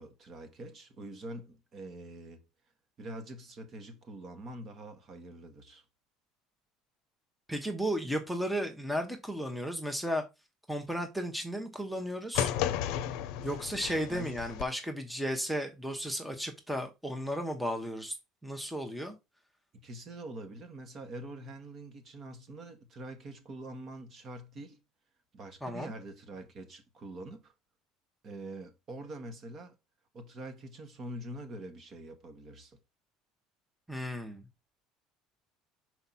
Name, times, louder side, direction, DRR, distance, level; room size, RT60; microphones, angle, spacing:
voice 1, 0.0-2.5 3.0-5.8 14.1-14.4 19.7-24.8 25.3-27.5 28.2-29.7 30.1-32.8, right 1 dB, 40° right, 1.4 m, -45 dB
voice 2, 7.5-10.2 10.7-12.5 13.4-18.2 18.4-19.1 25.6-25.9 33.9-34.4, equal, ahead, 1.0 m, -34 dB
sound 1, 12.3-14.6, left 11 dB, 70° left, 0.6 m, -33 dB
5.7 x 4.6 x 4.1 m
cardioid pair, 125°, 0 cm